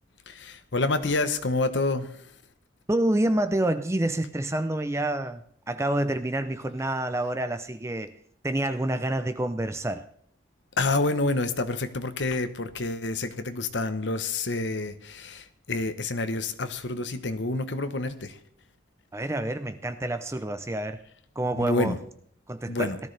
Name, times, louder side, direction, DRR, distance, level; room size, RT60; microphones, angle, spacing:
voice 1, 0.3-2.1 10.8-18.4 21.5-22.0 22.7-23.0, left 2 dB, 70° left, 10 dB, 1.0 m, -28 dB
voice 2, 2.9-5.4 5.7-8.1 8.4-10.0 19.1-21.0 21.4-21.9 22.5-22.9, right 1 dB, 15° right, 10 dB, 0.5 m, -27 dB
18.0 x 13.0 x 3.3 m, 0.65 s
head